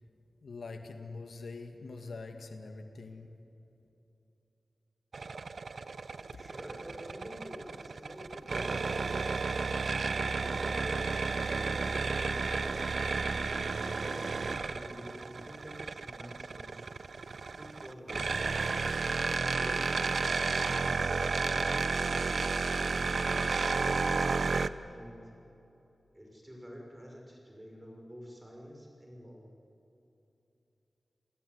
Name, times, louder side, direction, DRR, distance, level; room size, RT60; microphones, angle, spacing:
voice 1, 0.4-3.3 6.3-6.4, left 3 dB, 80° left, 5 dB, 2.1 m, -44 dB
sound 1, 5.1-24.7, right 4 dB, 65° right, 0.7 m, -32 dB
voice 2, 6.3-9.5 10.0-12.9 13.7-16.9 17.5-18.8 19.3-22.4 22.9-25.3 26.1-29.4, equal, 10° right, 0 dB, 6.2 m, -48 dB
29.0 x 20.0 x 9.7 m, 3.0 s
wide cardioid pair, 90°, 0 cm